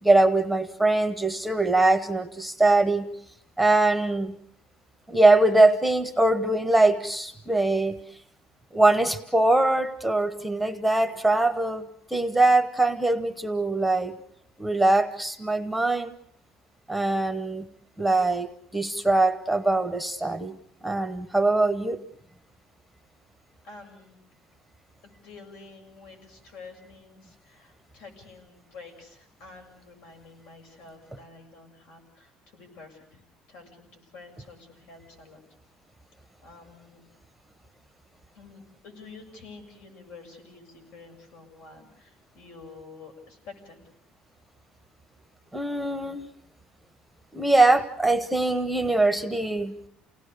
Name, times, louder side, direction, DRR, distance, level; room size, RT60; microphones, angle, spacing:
voice 1, 0.0-3.1 3.6-4.4 5.1-8.0 8.7-14.1 14.6-16.1 16.9-17.7 18.0-20.6 20.8-22.0 45.5-46.3 47.3-49.7, right 2 dB, ahead, 8 dB, 0.9 m, -22 dB
voice 2, 23.6-24.3 25.0-33.2 33.5-35.4 36.4-37.0 38.3-43.8, left 4 dB, 75° left, 4 dB, 7.0 m, -48 dB
29.5 x 18.5 x 6.7 m, 0.71 s
cardioid pair, 170°, 2 cm